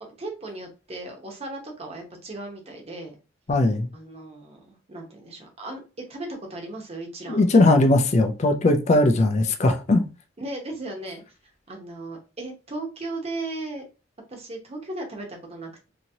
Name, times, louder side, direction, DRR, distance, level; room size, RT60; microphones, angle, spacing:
voice 1, 0.0-3.1 3.9-7.5 10.4-11.2 11.7-13.8 14.3-15.9, right 2 dB, 30° right, 0.9 m, -36 dB
voice 2, 3.5-3.9 7.3-10.0, left 2 dB, 35° left, 0.4 m, -19 dB
2.8 x 2.8 x 2.6 m
head